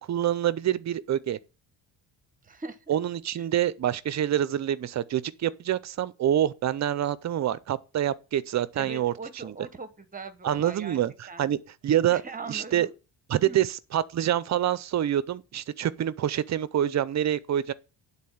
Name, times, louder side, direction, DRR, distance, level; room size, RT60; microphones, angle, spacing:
voice 1, 0.1-1.4 2.9-9.1 9.4-9.5 10.4-11.6 11.8-12.2 12.5-12.9 13.3-17.7, right 11 dB, 40° right, 0.5 m, -26 dB
voice 2, 2.4-2.9 8.8-11.0 11.3-11.5 12.1-12.9 13.4-13.6, right 4 dB, 20° right, 1.0 m, -40 dB
9.6 x 4.0 x 7.1 m
cardioid pair, 140°, 44 cm